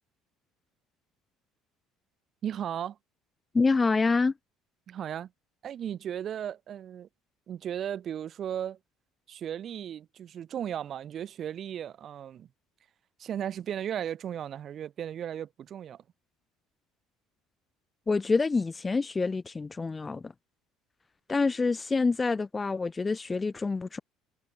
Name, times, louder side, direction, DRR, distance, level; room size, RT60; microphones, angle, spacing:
voice 1, 2.4-3.0 4.9-5.3 5.6-7.1 7.5-8.8 9.3-12.5 13.2-16.0, right 9 dB, 50° right, 2.5 m, -35 dB
voice 2, 3.5-4.3 18.1-20.3 21.3-24.0, left 4 dB, 20° left, 0.5 m, -27 dB
supercardioid pair, 95°, 0 cm